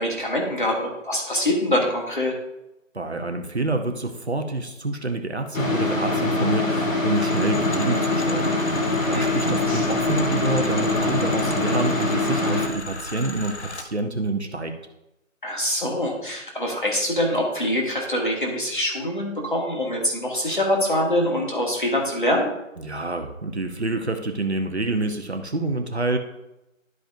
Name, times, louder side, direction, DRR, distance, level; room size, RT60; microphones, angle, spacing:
voice 1, 0.0-2.3 9.1-9.4 15.4-22.5, left 1 dB, 40° left, -1 dB, 1.8 m, -24 dB
voice 2, 2.9-14.7 22.8-26.2, right 2 dB, 55° right, 6 dB, 0.9 m, -27 dB
sound 1, 5.5-12.7, left 2 dB, 75° left, 1.8 m, -23 dB
sound 2, 7.2-13.9, left 2 dB, 55° left, 0.9 m, -36 dB
12.0 x 5.2 x 2.6 m, 0.92 s
figure-of-eight pair, 180°, 40 cm